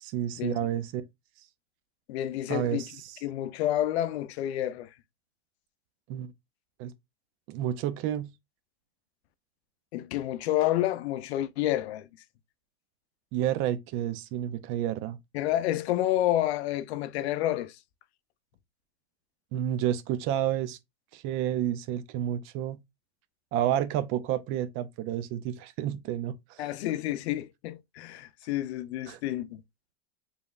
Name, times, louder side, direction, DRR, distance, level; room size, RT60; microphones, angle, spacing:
voice 1, 0.0-1.0 2.5-3.2 6.1-6.3 6.8-6.9 7.5-8.3 13.3-15.2 19.5-20.8 21.1-22.8 23.5-26.6 29.1-29.2, right 11 dB, 40° right, 0.5 m, -30 dB
voice 2, 2.1-2.9 3.2-4.9 9.9-12.1 15.3-17.8 26.6-29.6, left 13 dB, 70° left, 0.6 m, -29 dB
4.9 x 3.3 x 2.4 m
supercardioid pair, 125°, 34 cm